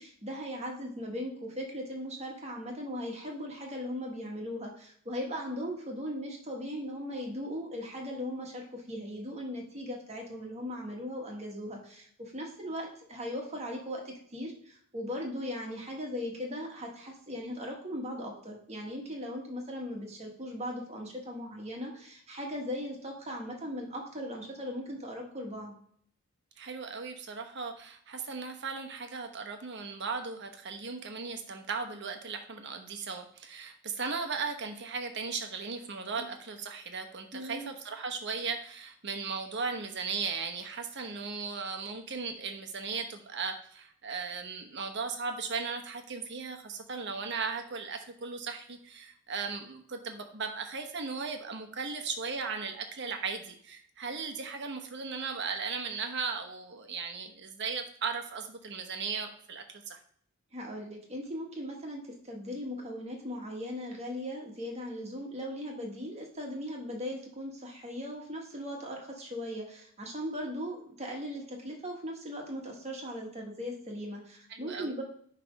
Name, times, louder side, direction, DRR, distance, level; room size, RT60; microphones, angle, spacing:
voice 1, 0.0-25.7 36.2-36.3 37.3-37.7 60.5-75.0, equal, 30° right, 1 dB, 1.5 m, -38 dB
voice 2, 26.6-60.0 74.5-74.9, right 5 dB, 55° right, 5 dB, 1.0 m, -37 dB
9.3 x 3.4 x 5.2 m, 0.62 s
head